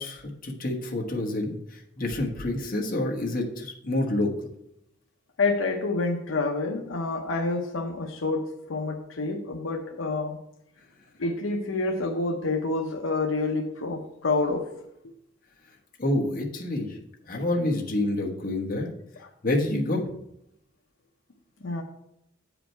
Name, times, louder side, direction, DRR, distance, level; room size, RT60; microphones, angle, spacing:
voice 1, 0.0-4.3 16.0-17.0 17.3-18.9 19.4-20.1, left 1 dB, 45° left, 0 dB, 1.2 m, -28 dB
voice 2, 5.4-10.4 11.2-14.6 19.2-19.3 21.6-21.8, left 3 dB, 75° left, 2 dB, 0.7 m, -28 dB
8.0 x 5.0 x 4.5 m, 0.79 s
head